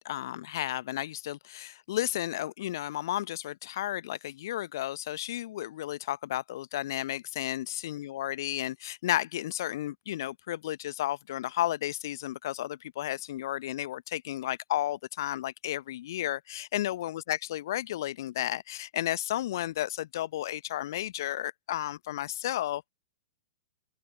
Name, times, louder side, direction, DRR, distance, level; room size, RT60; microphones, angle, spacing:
voice 1, 0.0-22.9, left 13 dB, 50° left, 0.8 m, -33 dB
open air
figure-of-eight pair, 105°, 3 cm